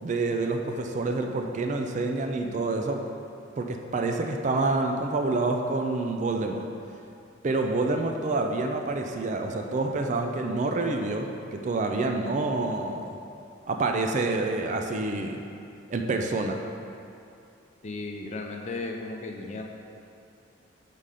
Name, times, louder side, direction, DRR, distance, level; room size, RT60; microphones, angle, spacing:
voice 1, 0.0-3.0 3.6-6.7 7.4-13.2 13.7-15.4 15.9-16.6, right 3 dB, 35° right, 3 dB, 0.3 m, -27 dB
voice 2, 17.8-19.6, left 3 dB, 35° left, 2 dB, 0.4 m, -35 dB
5.5 x 3.7 x 4.9 m, 2.6 s
head